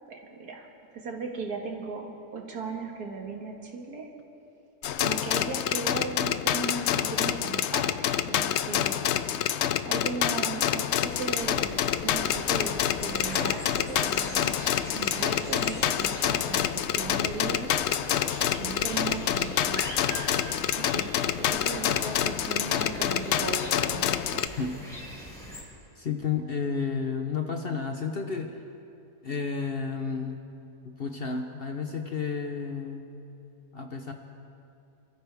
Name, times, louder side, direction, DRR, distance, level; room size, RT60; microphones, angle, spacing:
voice 1, 0.1-0.7 0.9-4.1 5.0-9.0 9.8-14.6 14.9-17.8 18.5-20.1 20.5-24.4, right 4 dB, 70° right, 1 dB, 2.1 m, -37 dB
sound 1, 4.8-24.5, left 10 dB, 75° left, 0.6 m, -27 dB
sound 2, 11.0-25.6, equal, ahead, 4.1 m, -41 dB
voice 2, 26.0-28.6 29.2-30.4 30.8-33.1 33.7-34.1, left 5 dB, 45° left, 4 dB, 0.9 m, -31 dB
27.0 x 14.0 x 3.4 m, 2.7 s
omnidirectional pair, 1.7 m